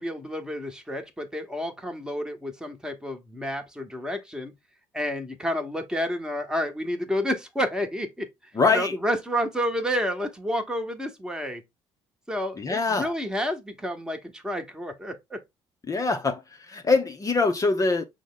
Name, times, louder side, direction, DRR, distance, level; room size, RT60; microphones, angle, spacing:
voice 1, 0.0-4.5 4.9-8.3 8.7-11.6 12.3-15.4, equal, 5° right, 1.1 m, -30 dB
voice 2, 8.5-8.9 12.6-13.1 15.9-16.4 16.7-18.0, left 4 dB, 25° left, 0.7 m, -23 dB
5.9 x 2.1 x 3.8 m
figure-of-eight pair, 55°, 14 cm